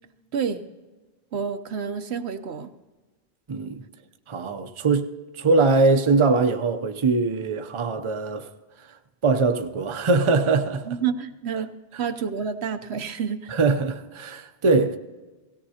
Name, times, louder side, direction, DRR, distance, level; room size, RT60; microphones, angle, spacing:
voice 1, 0.3-0.6 1.3-2.7 10.9-11.7 12.0-13.5, right 7 dB, 80° right, 1.0 m, -29 dB
voice 2, 3.5-3.8 4.3-8.5 9.2-10.9 13.5-15.0, right 3 dB, 35° right, 0.6 m, -22 dB
17.5 x 17.0 x 2.8 m
omnidirectional pair, 1.1 m